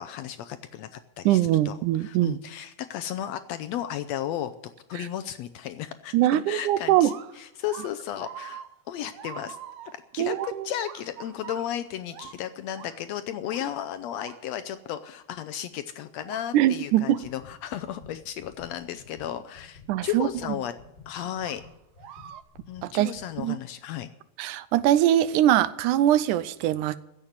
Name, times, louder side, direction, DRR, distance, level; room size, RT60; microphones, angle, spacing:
voice 1, 0.0-4.5 4.9-9.6 9.8-20.7 21.1-21.6 22.7-24.1, left 11 dB, 75° left, 10 dB, 1.6 m, -34 dB
voice 2, 1.3-2.4 5.0-5.1 6.1-7.1 10.2-10.7 16.5-17.2 19.9-20.3 22.8-23.1 23.4-23.6 24.4-27.0, right 13 dB, 85° right, 16 dB, 2.2 m, -22 dB
sound 1, 6.8-14.8 15.4-15.5 16.2-16.6 17.0-17.4 19.8-19.9 21.4-22.4, right 10 dB, 70° right, 1.5 m, -45 dB
sound 2, 17.2-23.5, left 5 dB, 35° left, 6.1 m, -51 dB
16.0 x 7.4 x 9.4 m, 0.88 s
omnidirectional pair, 3.5 m